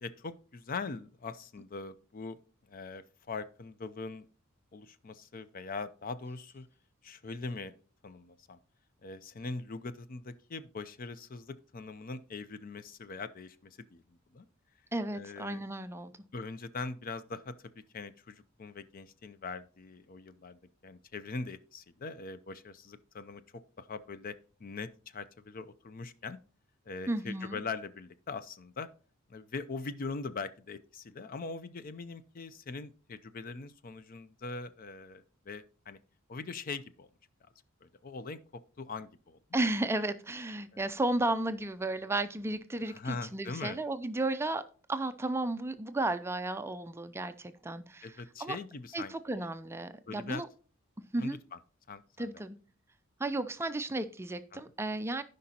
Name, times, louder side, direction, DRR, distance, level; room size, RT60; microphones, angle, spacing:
voice 1, 0.0-2.4 2.7-4.3 4.7-6.7 7.0-7.7 8.0-8.6 9.0-14.5 15.1-15.7 16.3-26.4 26.9-28.9 29.3-36.0 36.3-37.1 37.8-39.4 40.7-40.8 42.8-43.8 48.0-49.5 50.1-50.4 51.2-51.6 51.9-52.4 54.5-54.6, left 4 dB, 45° left, 0.5 m, -42 dB
voice 2, 14.9-16.1 27.1-27.6 39.5-44.6 44.9-48.1 48.4-48.6 48.9-50.5 51.1-51.4 52.2-52.6 53.2-55.2, right 2 dB, 10° right, 0.4 m, -33 dB
15.5 x 5.2 x 2.8 m
head